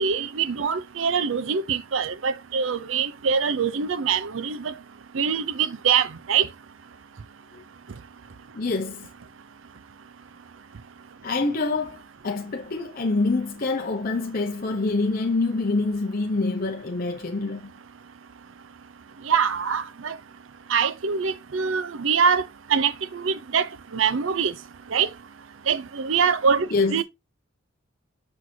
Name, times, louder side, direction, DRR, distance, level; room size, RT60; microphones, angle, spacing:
voice 1, 0.0-4.7 5.1-6.5 19.3-20.2 20.7-22.4 22.7-23.7 23.9-24.5 24.9-25.1 25.7-27.0, right 6 dB, 70° right, 0.6 m, -24 dB
voice 2, 8.5-9.1 11.2-17.7 26.7-27.0, left 3 dB, 45° left, 0.9 m, -26 dB
6.4 x 6.1 x 2.8 m
head